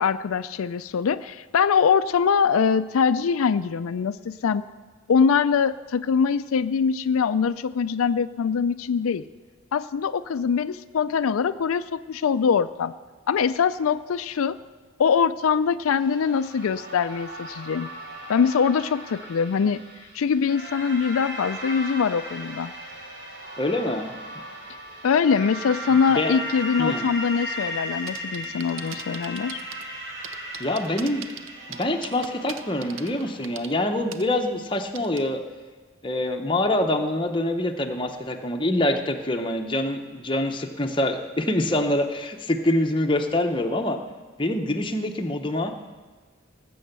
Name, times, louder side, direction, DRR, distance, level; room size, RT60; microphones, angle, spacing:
voice 1, 0.0-4.6 5.1-9.2 9.7-12.9 13.3-14.6 15.0-17.9 18.3-19.8 20.1-22.7 25.0-29.6, left 6 dB, 85° left, 12 dB, 0.4 m, -23 dB
sound 1, 16.0-33.4, right 1 dB, 55° right, 3.6 m, -37 dB
voice 2, 23.6-24.1 26.1-26.3 26.8-27.1 30.6-31.2 31.7-35.4 36.0-44.0 44.4-45.7, left 1 dB, 25° left, 4 dB, 0.9 m, -25 dB
sound 2, 28.1-29.8 30.2-33.7 34.1-34.2 35.0-35.2, right 8 dB, 70° right, 0.8 m, -39 dB
19.0 x 7.8 x 6.7 m, 1.4 s
head